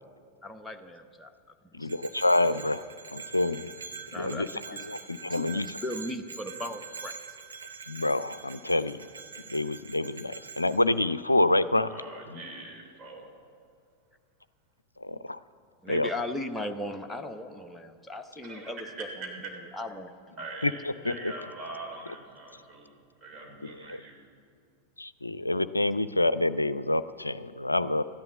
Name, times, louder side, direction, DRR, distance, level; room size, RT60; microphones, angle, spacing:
voice 1, 0.4-1.3 1.8-1.9 4.1-4.8 5.3-5.5 5.8-7.1 15.8-20.4, left 1 dB, 5° left, 5 dB, 0.9 m, -37 dB
voice 2, 1.7-2.8 3.1-3.7 4.2-5.8 7.9-9.1 9.5-11.9 15.0-15.4 15.9-16.1 20.6-21.3 23.6-24.0 25.0-28.0, left 2 dB, 85° left, 15 dB, 0.4 m, -27 dB
Bell, 1.9-10.8, right 5 dB, 75° right, 1.2 m, -44 dB
voice 3, 11.9-13.3 18.4-19.3 20.4-24.2, right 2 dB, 30° right, 0 dB, 3.1 m, -43 dB
14.5 x 10.5 x 7.2 m, 2.3 s
figure-of-eight pair, 90°, 0 cm